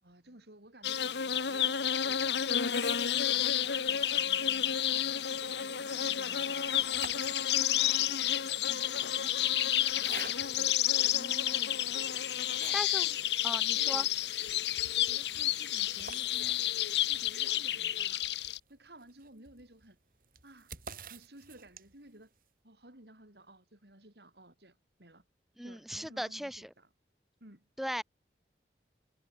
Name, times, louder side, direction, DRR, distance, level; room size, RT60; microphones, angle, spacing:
voice 1, 0.0-4.7 5.4-10.8 11.4-11.7 12.3-12.8 13.7-14.1 15.0-16.7 17.0-18.3 18.7-20.0 20.4-20.8 21.1-22.3 22.6-25.2 25.6-26.9 27.4-27.7, right 1 dB, 70° right, 5.0 m, -55 dB
sound 1, 0.8-18.6, left 10 dB, 80° left, 1.2 m, -30 dB
sound 2, 6.7-7.9 8.7-10.8 11.4-11.5 12.0-13.1 13.4-13.5 13.8-13.9 14.2-22.1, right 5 dB, 50° right, 6.2 m, -50 dB
voice 2, 11.1-11.8 12.7-13.1 13.4-14.1 25.6-26.7 27.8-28.0, equal, ahead, 2.2 m, -38 dB
head